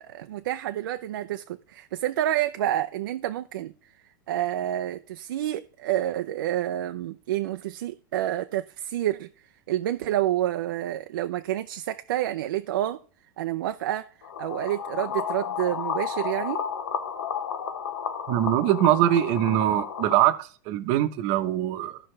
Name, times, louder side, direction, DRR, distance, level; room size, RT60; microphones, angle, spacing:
voice 1, 0.0-3.7 4.3-9.3 9.7-13.0 13.4-14.1 14.4-16.6, right 13 dB, 80° right, 0.5 m, -28 dB
sound 1, 14.2-20.3, left 7 dB, 85° left, 1.1 m, -32 dB
voice 2, 18.3-22.0, right 13 dB, 45° right, 0.8 m, -23 dB
14.5 x 5.4 x 3.3 m
supercardioid pair, 145°, 11 cm